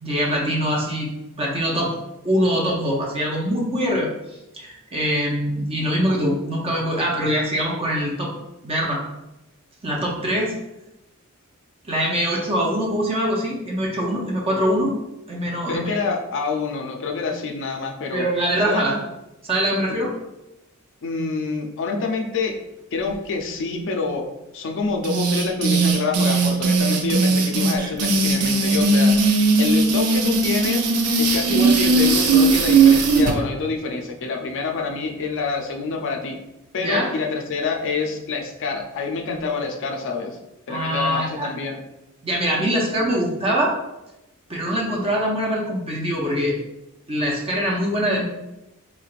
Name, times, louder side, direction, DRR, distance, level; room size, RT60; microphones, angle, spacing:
voice 1, 0.0-1.1 1.4-1.9 2.2-4.1 4.5-8.3 8.6-9.0 9.8-10.5 11.8-14.9 15.3-16.0 18.1-19.0 19.4-20.1 36.8-37.1 40.7-41.5 42.2-43.7 44.5-46.5 47.1-48.2, equal, 25° right, -2 dB, 0.6 m, -23 dB
voice 2, 15.7-18.3 18.7-18.8 21.0-22.6 22.9-24.2 24.5-29.1 29.6-30.8 31.2-36.4 36.7-41.8, left 4 dB, 60° left, 3 dB, 0.5 m, -27 dB
sound 1, 25.0-33.3, right 3 dB, 85° right, 0.5 m, -18 dB
3.8 x 3.2 x 2.4 m, 0.95 s
head